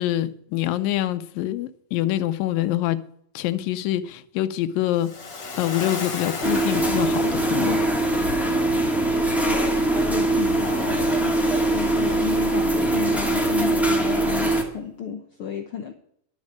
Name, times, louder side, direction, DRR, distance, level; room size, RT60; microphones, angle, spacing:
voice 1, 0.0-3.0 3.4-5.1 5.6-7.8, left 13 dB, 90° left, 2.5 m, -25 dB
Waves surf, 4.9-8.2 9.9-13.0, left 4 dB, 40° left, 2.2 m, -37 dB
sound 1, 6.4-14.7, right 2 dB, ahead, 1.1 m, -22 dB
voice 2, 9.4-11.4 11.7-15.9, left 7 dB, 75° left, 1.2 m, -32 dB
11.5 x 6.4 x 8.4 m
omnidirectional pair, 3.9 m